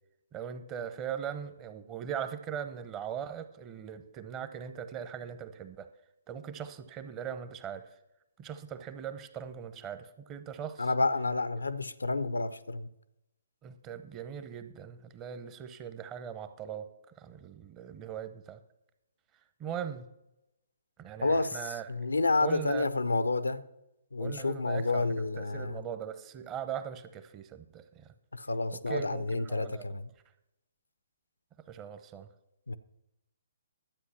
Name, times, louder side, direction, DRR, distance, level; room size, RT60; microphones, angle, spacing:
voice 1, 0.3-5.9 6.3-7.8 8.4-10.9 13.6-16.9 17.2-18.6 19.6-20.0 21.0-21.9 22.4-22.9 24.2-28.1 28.7-30.0 31.7-32.3, right 8 dB, 20° right, 0.8 m, -40 dB
voice 2, 10.8-12.9 21.2-21.6 21.9-23.7 24.1-25.8 28.3-30.1 32.7-32.8, left 3 dB, 80° left, 0.6 m, -29 dB
12.0 x 8.3 x 5.7 m
figure-of-eight pair, 130°, 0 cm